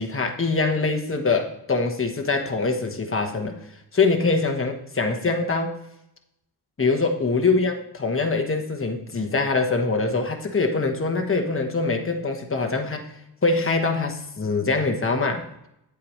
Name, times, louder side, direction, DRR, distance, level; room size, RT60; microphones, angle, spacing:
voice 1, 0.0-3.6 3.9-5.8 6.8-13.1 13.4-15.5, left 3 dB, 30° left, 4 dB, 1.2 m, -23 dB
8.7 x 8.3 x 3.2 m, 0.82 s
wide cardioid pair, 65°, 44 cm